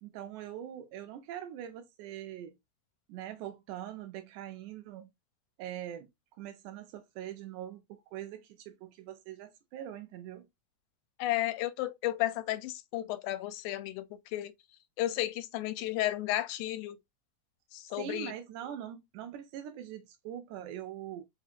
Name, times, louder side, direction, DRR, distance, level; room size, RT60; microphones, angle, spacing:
voice 1, 0.0-2.6 3.1-5.1 5.6-6.1 6.4-10.5 18.0-21.2, right 11 dB, 85° right, 2.1 m, -43 dB
voice 2, 11.2-14.5 15.0-17.0 17.7-18.3, left 15 dB, 85° left, 2.0 m, -33 dB
5.1 x 2.5 x 2.7 m
omnidirectional pair, 3.5 m